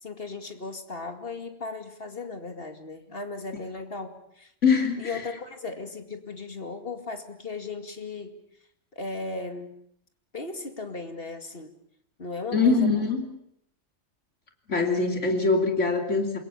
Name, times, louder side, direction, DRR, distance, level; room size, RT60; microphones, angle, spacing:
voice 1, 0.0-4.5 5.0-8.3 8.9-9.7 10.3-11.7 12.2-13.0, left 3 dB, 50° left, 6 dB, 2.6 m, -36 dB
voice 2, 4.6-5.0 12.5-13.2 14.7-16.4, left 4 dB, 75° left, 3 dB, 3.2 m, -23 dB
27.5 x 22.0 x 7.1 m, 0.70 s
omnidirectional pair, 1.3 m